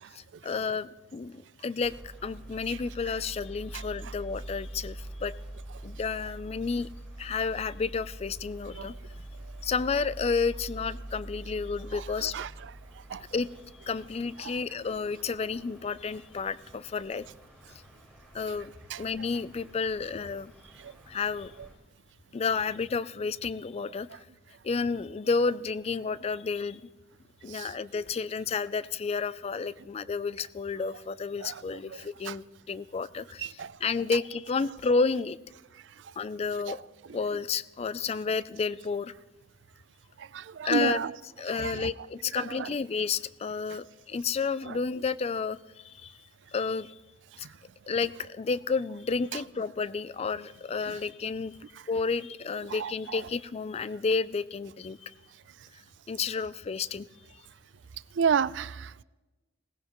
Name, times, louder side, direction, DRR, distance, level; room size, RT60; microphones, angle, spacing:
voice 1, 0.1-1.9 2.2-5.3 5.8-6.9 7.2-8.9 9.6-12.4 13.3-13.5 13.8-17.2 18.3-18.7 19.0-20.5 21.1-21.5 22.3-24.1 24.6-26.8 27.4-35.4 36.2-36.8 37.1-39.1 40.6-41.0 41.4-45.6 45.8-46.1 46.5-47.0 47.4-47.5 47.9-51.6 51.9-55.1 56.1-57.1, left 4 dB, 35° left, 0.4 m, -31 dB
sound 1, 1.8-21.7, right 1 dB, 5° left, 5.5 m, -45 dB
voice 2, 11.9-12.5 13.1-13.2 18.9-19.0 27.5-27.7 31.4-31.6 32.3-32.4 33.4-33.7 36.7-36.8 40.3-41.1 41.6-41.9 42.4-42.7 52.7-53.2 58.2-59.0, right 7 dB, 75° right, 0.4 m, -31 dB
20.0 x 18.0 x 3.0 m
head